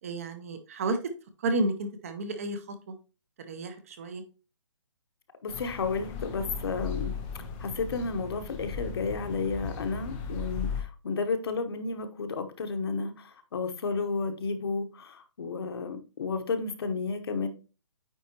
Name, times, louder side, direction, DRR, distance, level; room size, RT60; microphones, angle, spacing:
voice 1, 0.0-1.0 1.4-2.9 3.5-4.2, right 2 dB, 30° right, 0.6 m, -31 dB
voice 2, 5.4-7.2 7.6-17.5, left 4 dB, 50° left, 1.0 m, -32 dB
sound 1, 5.5-10.8, left 5 dB, 5° left, 0.3 m, -36 dB
9.1 x 4.1 x 2.8 m
hypercardioid pair, 165°, 16 cm